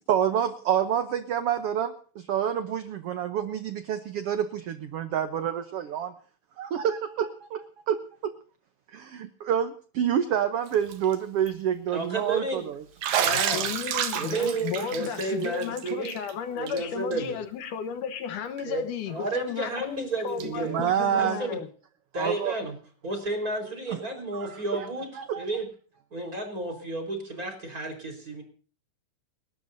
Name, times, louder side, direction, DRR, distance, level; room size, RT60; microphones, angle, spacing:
voice 1, 0.1-6.1 6.6-8.4 8.9-12.8 20.5-21.4 22.2-22.5 23.9-24.0 24.3-24.9 25.2-25.4, right 9 dB, 70° right, 1.4 m, -28 dB
Bathtub (filling or washing), 10.7-11.1 11.5-11.6 13.0-16.3 16.7-16.8 17.1-17.2 18.6-18.7 20.4-20.5, right 9 dB, 90° right, 3.2 m, -30 dB
voice 2, 11.9-12.7 13.2-13.7 14.2-16.2 16.5-17.4 18.6-21.6 22.1-22.8 23.0-25.1 25.4-25.7 26.1-28.4, right 2 dB, 25° right, 4.9 m, -32 dB
voice 3, 13.2-21.7, left 8 dB, 75° left, 2.7 m, -34 dB
30.0 x 13.0 x 2.7 m
omnidirectional pair, 3.8 m